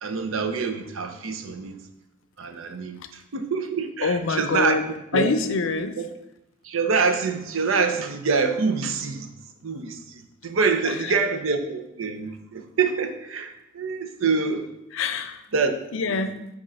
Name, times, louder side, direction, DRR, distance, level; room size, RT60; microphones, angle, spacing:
voice 1, 0.0-1.8 2.4-4.8 5.1-5.3 6.0-6.1 6.6-9.3 9.6-14.7 15.5-15.8 16.1-16.2, right 4 dB, 80° right, 7 dB, 0.6 m, -26 dB
voice 2, 4.0-4.9 5.1-6.0 10.9-11.0 14.9-15.4 15.9-16.4, left 4 dB, 70° left, 10 dB, 0.5 m, -25 dB
6.2 x 3.0 x 5.4 m, 0.86 s
head